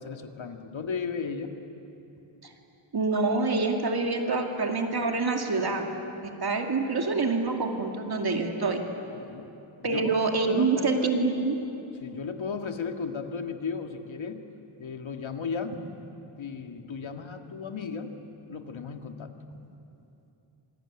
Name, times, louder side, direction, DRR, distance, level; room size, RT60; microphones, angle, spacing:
voice 1, 0.0-1.5 9.1-9.5 9.8-10.1 10.5-11.2 12.0-14.4 14.8-15.8 16.4-18.1 18.5-19.3, left 5 dB, 65° left, 4 dB, 2.0 m, -35 dB
voice 2, 2.9-6.0 6.4-8.8 9.8-11.6, right 3 dB, 50° right, 2 dB, 2.5 m, -26 dB
26.5 x 21.0 x 9.9 m, 2.9 s
wide cardioid pair, 140°, 49 cm